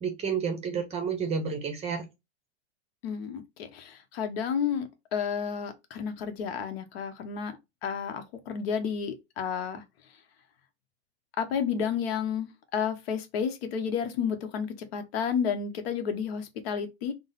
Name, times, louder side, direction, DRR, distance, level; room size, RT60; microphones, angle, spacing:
voice 1, 0.0-2.0, right 6 dB, 20° right, 0.7 m, -30 dB
voice 2, 3.0-9.8 11.4-17.1, left 7 dB, 65° left, 0.9 m, -31 dB
3.7 x 2.0 x 3.9 m
supercardioid pair, 140°, 34 cm